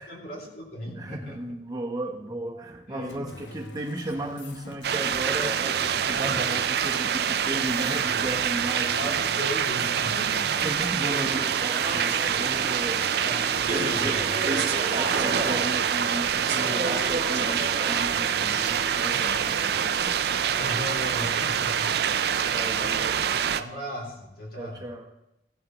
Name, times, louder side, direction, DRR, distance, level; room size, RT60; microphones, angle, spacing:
voice 1, 0.0-1.4 2.9-3.3 8.7-10.5 13.2-14.2 20.5-22.0 22.8-24.9, equal, 60° left, -1 dB, 2.5 m, -37 dB
voice 2, 1.0-9.2 10.6-13.2 13.7-14.1 14.5-20.2 22.5-23.1 24.5-25.1, right 1 dB, 20° right, 1 dB, 1.0 m, -34 dB
sound 1, 3.1-15.6 15.9-19.8, left 2 dB, 90° left, 1.1 m, -45 dB
sound 2, 4.8-23.6, right 8 dB, 60° right, 0.4 m, -26 dB
Speech / Chatter, 10.6-20.0, right 2 dB, 40° right, 1.2 m, -34 dB
15.5 x 11.5 x 3.0 m, 0.87 s
head